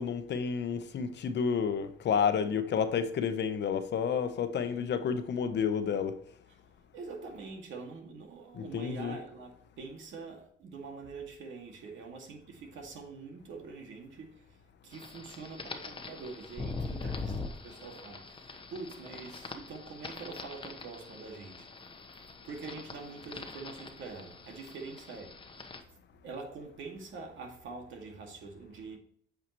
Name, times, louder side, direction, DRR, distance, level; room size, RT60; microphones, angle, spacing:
voice 1, 0.0-6.2 8.5-9.2, left 6 dB, 60° left, 1.0 m, -30 dB
voice 2, 6.9-14.4 14.8-25.3 26.2-29.0, right 4 dB, 75° right, 2.2 m, -45 dB
sound 1, 14.9-25.8, left 3 dB, 25° left, 1.1 m, -43 dB
8.8 x 5.8 x 3.1 m
cardioid pair, 90°, 20 cm